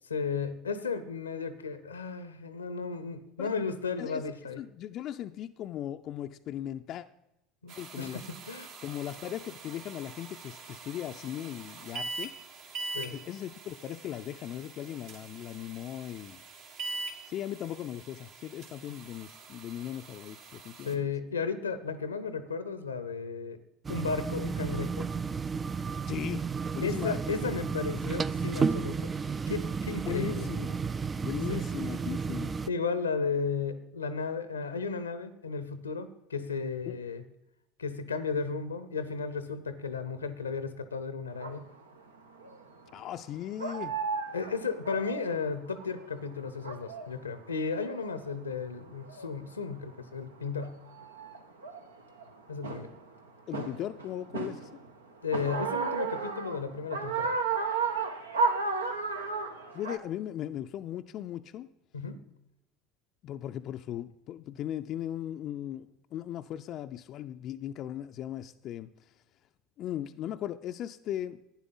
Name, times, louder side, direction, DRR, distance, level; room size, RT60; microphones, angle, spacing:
voice 1, 0.1-4.6 7.6-8.7 12.9-13.2 20.8-23.6 23.9-25.1 26.8-29.1 29.5-30.5 31.5-31.6 32.7-37.2 37.8-41.6 44.3-50.8 52.5-52.9 55.2-57.4 61.9-62.3, left 5 dB, 85° left, 0.7 m, -34 dB
voice 2, 4.6-7.1 7.8-8.2 8.8-12.3 13.1-16.4 17.3-21.1 26.1-26.4 26.7-27.2 30.1-30.8 31.2-32.5 36.9-37.0 42.9-43.9 53.5-54.7 59.7-61.7 63.2-68.9 69.8-71.4, left 11 dB, 50° left, 0.4 m, -38 dB
sound 1, 7.7-20.9, right 3 dB, 60° right, 1.5 m, -44 dB
sound 2, 23.8-32.7, right 5 dB, 25° right, 0.3 m, -32 dB
sound 3, 41.4-41.6 42.4-42.7 43.2-43.3 43.6-46.2 46.5-47.1 47.5-48.3 49.0-49.4 50.2-50.3 50.6-52.3 52.6-53.0 53.5-54.9 55.3-60.0, right 4 dB, 85° right, 0.8 m, -33 dB
11.5 x 9.7 x 4.0 m
figure-of-eight pair, 70°, 0 cm